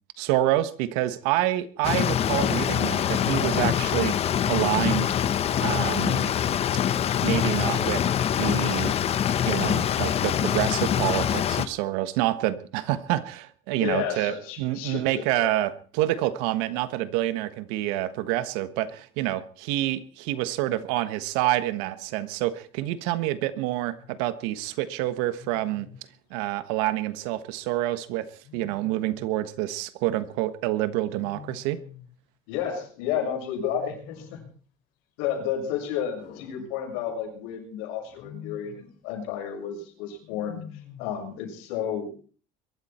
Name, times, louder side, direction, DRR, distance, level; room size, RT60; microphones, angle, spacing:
voice 1, 0.2-4.2 4.5-5.1 5.6-6.3 7.2-8.1 8.4-8.9 9.5-25.9 26.3-28.3 28.5-31.8, right 14 dB, 85° right, 14 dB, 1.4 m, -27 dB
sound 1, 1.8-11.7, left 9 dB, 35° left, 1.0 m, -24 dB
voice 2, 13.7-15.5 32.5-34.4 35.2-40.6 41.0-42.3, left 9 dB, 85° left, 1 dB, 7.0 m, -31 dB
Wild animals, 23.8-24.2 25.4-26.1 28.4-29.4 31.1-32.2 33.7-34.6 36.2-37.3 38.0-38.9 40.2-41.2, left 9 dB, 60° left, 5.2 m, -47 dB
22.5 x 13.0 x 4.4 m, 0.41 s
cardioid pair, 140°, 17 cm